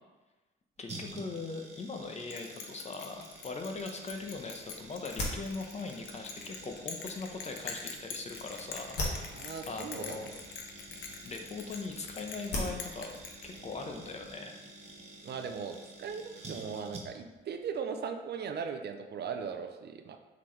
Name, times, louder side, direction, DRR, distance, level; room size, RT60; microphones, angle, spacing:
voice 1, 0.8-9.0 9.7-10.3 11.2-13.1 13.4-14.6, left 3 dB, 35° left, 3 dB, 0.9 m, -40 dB
sound 1, 0.9-17.4 17.6-17.7, right 2 dB, 35° right, 1.2 m, -50 dB
Bell, 2.3-14.0, left 6 dB, 85° left, 0.8 m, -45 dB
sound 2, 4.0-14.3, left 1 dB, 60° left, 1.6 m, -43 dB
voice 2, 9.3-10.2 15.2-20.2, right 6 dB, 60° right, 6 dB, 0.6 m, -38 dB
7.4 x 4.0 x 3.3 m, 1.1 s
cardioid pair, 90°, 20 cm